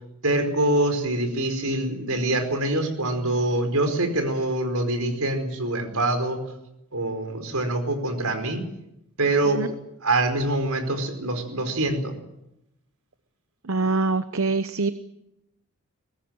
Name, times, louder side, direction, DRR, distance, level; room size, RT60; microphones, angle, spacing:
voice 1, 0.2-6.4 6.9-8.6 9.2-9.6 10.0-12.1, right 2 dB, 80° right, 7 dB, 4.8 m, -24 dB
voice 2, 13.6-14.9, right 3 dB, 65° right, 11 dB, 0.9 m, -24 dB
23.0 x 19.0 x 8.9 m, 0.85 s
head